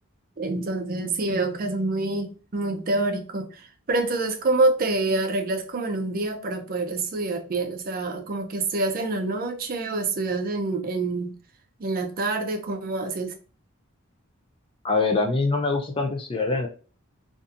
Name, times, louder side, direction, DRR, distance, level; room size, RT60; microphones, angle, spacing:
voice 1, 0.4-2.3 2.5-3.6 3.9-11.3 11.8-13.3, right 2 dB, 45° right, 0.5 m, -26 dB
voice 2, 14.8-16.7, left 3 dB, 25° left, 0.4 m, -24 dB
2.6 x 2.5 x 2.4 m
head